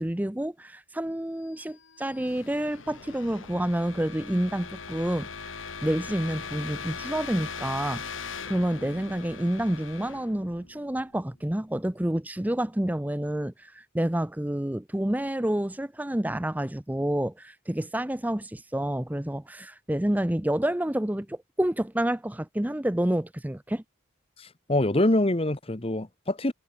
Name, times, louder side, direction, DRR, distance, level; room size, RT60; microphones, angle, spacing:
voice 1, 0.0-8.0 8.5-23.8, right 1 dB, 10° right, 0.6 m, -29 dB
sound 1, 1.6-11.4, left 5 dB, 75° left, 3.2 m, -40 dB
voice 2, 24.4-26.5, left 1 dB, 30° left, 1.2 m, -25 dB
head